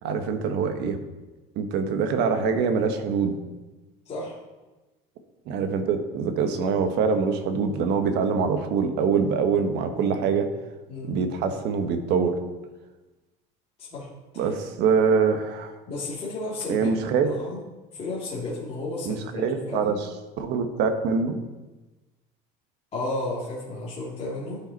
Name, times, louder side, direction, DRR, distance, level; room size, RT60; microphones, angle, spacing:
voice 1, 0.0-1.0 1.6-3.4 5.5-10.5 11.1-12.3 14.4-15.7 16.7-17.3 19.1-19.9 20.4-21.4, right 5 dB, 65° right, 7 dB, 1.2 m, -24 dB
voice 2, 4.0-4.4 10.9-11.2 13.8-14.5 15.9-16.9 17.2-17.6 17.9-20.0 22.9-24.6, left 2 dB, 35° left, -7 dB, 2.5 m, -33 dB
13.0 x 5.7 x 4.1 m, 1.2 s
cardioid pair, 135°, 18 cm